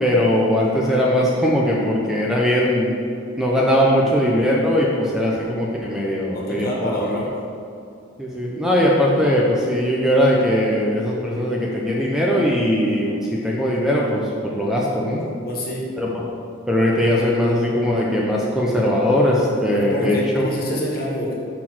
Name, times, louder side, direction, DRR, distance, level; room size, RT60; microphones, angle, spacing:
voice 1, 0.0-2.9 3.4-7.2 8.2-15.2 16.0-16.2 16.7-20.5, equal, 5° right, -4 dB, 0.8 m, -20 dB
voice 2, 6.3-7.3 15.4-15.8 19.7-21.4, equal, 50° left, -3 dB, 1.9 m, -27 dB
6.7 x 5.9 x 6.2 m, 2.5 s
head